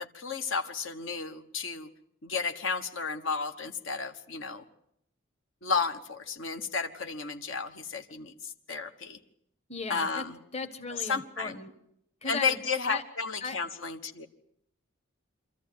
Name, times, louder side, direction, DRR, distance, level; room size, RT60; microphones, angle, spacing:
voice 1, 0.0-1.9 2.2-4.6 5.6-9.2 9.9-10.4 10.9-11.6 12.2-14.3, left 5 dB, 70° left, 7 dB, 1.3 m, -33 dB
voice 2, 9.7-10.2 10.5-11.7 12.2-12.6 12.9-13.0 13.4-13.6, left 4 dB, 30° left, 8 dB, 1.4 m, -36 dB
26.0 x 14.0 x 9.4 m, 0.75 s
head